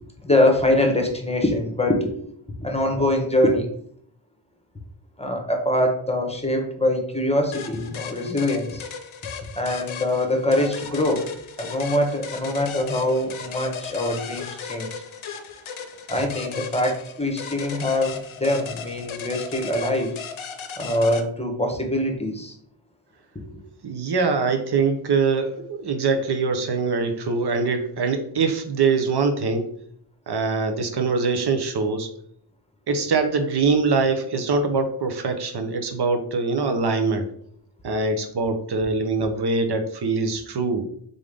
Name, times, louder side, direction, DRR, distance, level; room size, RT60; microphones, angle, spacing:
voice 1, 0.2-2.3 2.6-3.7 5.2-8.8 9.6-11.3 11.6-14.9 16.1-20.1 20.8-22.5 23.5-23.6, left 1 dB, 10° left, 3 dB, 1.0 m, -23 dB
sound 1, 7.5-21.2, left 6 dB, 70° left, 0.7 m, -36 dB
voice 2, 23.8-29.7 30.3-32.1 32.9-37.3 37.8-40.8, right 4 dB, 50° right, 6 dB, 0.9 m, -23 dB
3.8 x 3.6 x 3.4 m, 0.64 s
cardioid pair, 60°, 49 cm